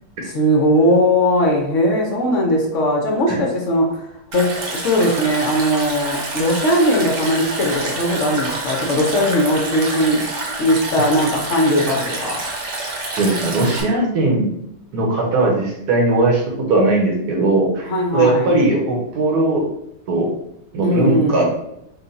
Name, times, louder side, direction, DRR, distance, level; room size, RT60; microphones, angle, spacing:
voice 1, 0.3-4.1 4.3-10.2 10.6-12.4 17.8-18.5 20.8-21.5, equal, 60° left, -1 dB, 1.0 m, -19 dB
Stream, 4.3-13.8, right 2 dB, 55° right, 1.0 m, -27 dB
voice 2, 13.1-14.5 14.9-19.7 20.1-20.3 20.7-21.5, right 2 dB, 85° right, -1 dB, 1.4 m, -19 dB
3.8 x 2.3 x 3.9 m, 0.79 s
omnidirectional pair, 1.6 m